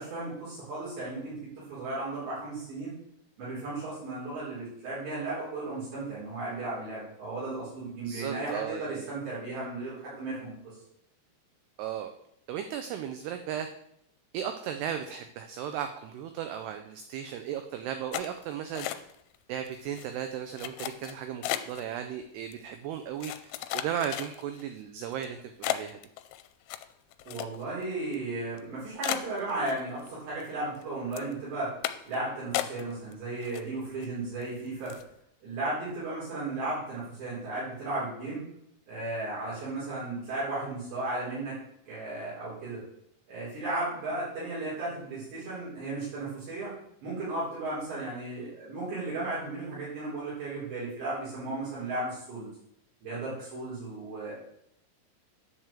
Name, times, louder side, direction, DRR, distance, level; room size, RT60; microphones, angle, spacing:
voice 1, 0.0-2.9 3.4-10.8 27.3-31.7 32.1-35.0 35.4-38.4 38.9-41.6 41.9-42.8 43.3-46.7 47.0-52.5 53.0-54.3, right 2 dB, 65° right, -10 dB, 6.4 m, -35 dB
voice 2, 8.1-9.1 11.8-12.1 12.5-13.7 14.3-19.1 19.5-26.0, right 9 dB, 85° right, 7 dB, 2.4 m, -36 dB
sound 1, 18.1-19.4 19.7-20.1 20.6-21.8 22.5-22.6 23.2-24.6 25.1-25.3 25.6-27.8 28.1-28.2 28.6-28.7 29.0-30.1 30.4-30.8 31.1-31.3 31.8-32.2 32.5-33.1 33.4-34.1 34.4-34.5 34.9-35.1, left 14 dB, 85° left, 3.0 m, -34 dB
10.5 x 4.8 x 7.4 m, 0.74 s
omnidirectional pair, 5.3 m